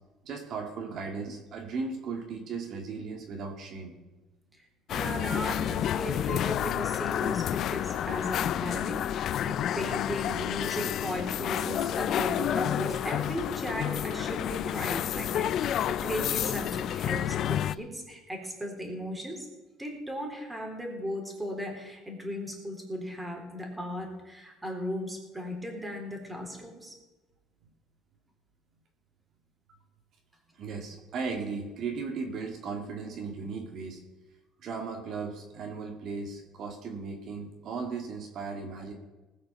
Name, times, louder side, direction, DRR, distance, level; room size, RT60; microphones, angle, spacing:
voice 1, 0.2-3.9 5.3-5.4 30.5-34.0 34.6-38.9, right 4 dB, 55° right, 2 dB, 2.1 m, -36 dB
voice 2, 4.6-19.5 19.8-26.9, equal, 10° right, 1 dB, 3.8 m, -36 dB
sound 1, 4.9-17.8, left 10 dB, 55° left, 0.4 m, -30 dB
19.0 x 6.6 x 7.1 m, 1.1 s
cardioid pair, 115°, 0 cm